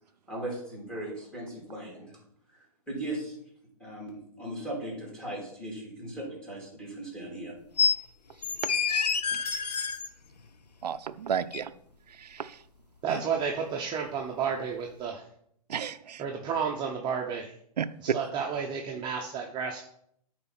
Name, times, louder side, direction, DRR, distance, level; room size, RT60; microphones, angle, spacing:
voice 1, 0.3-2.2 2.9-3.4 3.8-7.5, right 1 dB, 5° left, -2 dB, 3.6 m, -38 dB
sound 1, 7.8-8.0 8.4-10.1 11.5-11.6, left 6 dB, 85° left, 0.8 m, -27 dB
voice 2, 10.8-11.7 12.2-12.5 13.1-13.2 15.7-16.2 17.8-18.2, right 8 dB, 85° right, 13 dB, 0.5 m, -32 dB
voice 3, 13.0-15.2 16.2-17.5 18.0-19.8, right 6 dB, 20° right, 1 dB, 0.9 m, -31 dB
8.6 x 4.3 x 6.0 m, 0.69 s
hypercardioid pair, 135°, 20 cm